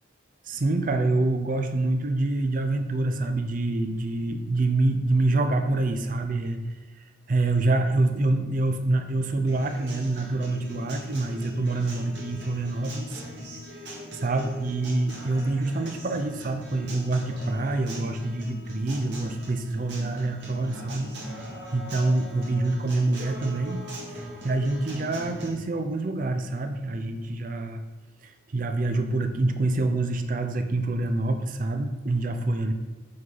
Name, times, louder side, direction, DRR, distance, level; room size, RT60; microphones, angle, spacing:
voice 1, 0.5-6.6 7.3-13.2 14.1-21.1 21.7-23.8 24.1-27.8 28.2-32.7, right 2 dB, 40° right, 7 dB, 0.5 m, -26 dB
Acoustic guitar, 9.5-25.5, equal, 60° right, 1.7 m, -40 dB
5.4 x 5.4 x 3.9 m, 1.3 s
head